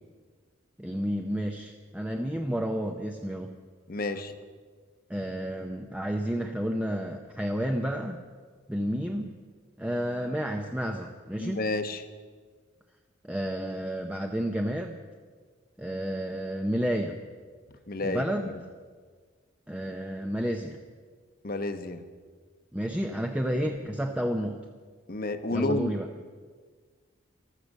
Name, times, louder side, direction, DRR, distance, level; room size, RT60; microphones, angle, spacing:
voice 1, 0.8-3.5 5.1-8.2 8.7-9.3 9.8-11.6 13.2-15.0 15.8-17.2 18.0-18.5 19.7-20.8 22.7-24.6 25.5-26.1, equal, 5° right, 2 dB, 0.6 m, -31 dB
voice 2, 3.9-4.3 11.4-12.0 17.9-18.3 21.4-22.0 25.1-25.9, left 2 dB, 45° left, 9 dB, 0.9 m, -30 dB
15.0 x 13.0 x 6.4 m, 1.5 s
head